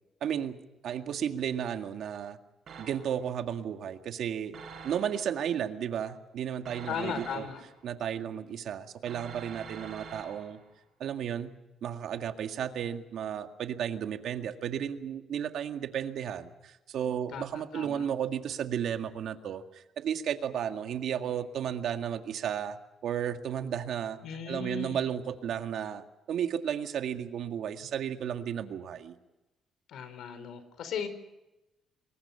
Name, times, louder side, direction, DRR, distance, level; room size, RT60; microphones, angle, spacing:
voice 1, 0.2-0.6 0.8-2.4 2.8-4.6 4.8-7.4 7.8-10.6 11.0-11.5 11.8-24.2 24.5-29.2, right 9 dB, 60° right, 6 dB, 1.9 m, -33 dB
sound 1, 2.7-3.3 4.5-5.4 6.7-7.9 9.1-10.7, right 5 dB, 45° right, 6.7 m, -46 dB
voice 2, 6.9-7.6 17.3-17.4 17.7-18.1 24.2-25.0 29.9-31.1, left 7 dB, 65° left, 12 dB, 4.4 m, -36 dB
28.0 x 22.5 x 5.7 m, 0.98 s
cardioid pair, 160°, 0 cm